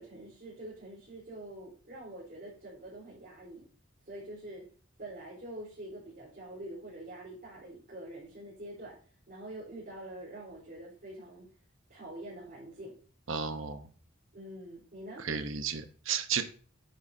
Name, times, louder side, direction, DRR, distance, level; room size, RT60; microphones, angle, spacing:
voice 1, 0.0-3.7 4.0-4.7 5.0-9.0 9.3-11.5 11.9-13.0 14.3-15.2, right 1 dB, 50° right, -8 dB, 4.2 m, -45 dB
voice 2, 13.3-13.9 15.2-16.4, right 6 dB, 70° right, 9 dB, 1.0 m, -33 dB
9.5 x 8.8 x 2.8 m, 0.42 s
head